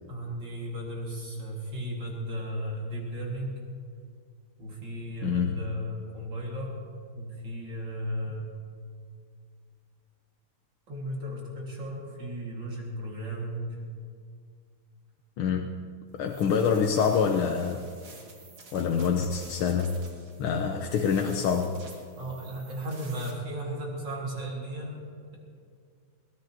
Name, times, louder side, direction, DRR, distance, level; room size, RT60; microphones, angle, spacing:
voice 1, 0.1-3.6 4.6-6.8 7.1-8.5 10.9-13.8 20.4-20.8 22.2-25.0, equal, 60° right, -2 dB, 2.6 m, -35 dB
voice 2, 5.2-5.7 15.4-15.7 16.1-17.9 18.7-20.0 20.4-21.8, left 6 dB, 85° left, 3 dB, 1.7 m, -26 dB
sound 1, 16.2-23.3, right 3 dB, 80° right, 3.0 m, -51 dB
22.5 x 17.0 x 2.8 m, 2.2 s
omnidirectional pair, 2.3 m